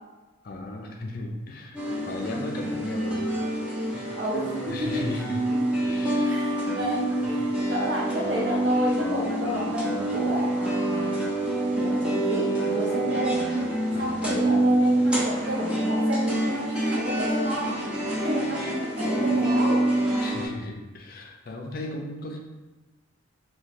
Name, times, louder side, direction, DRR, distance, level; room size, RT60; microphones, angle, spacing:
voice 1, 0.4-3.6 3.9-4.1 4.7-5.5 5.8-6.4 13.9-14.4 20.2-22.4, left 2 dB, 45° left, 1 dB, 0.4 m, -36 dB
sound 1, 1.7-20.5, right 1 dB, 5° right, 0.6 m, -26 dB
voice 2, 4.1-5.2 5.5-5.6 6.2-11.2 11.7-13.4 14.0-17.8 18.2-19.9, equal, 55° right, -3 dB, 0.8 m, -31 dB
3.1 x 2.2 x 4.1 m, 1.2 s
head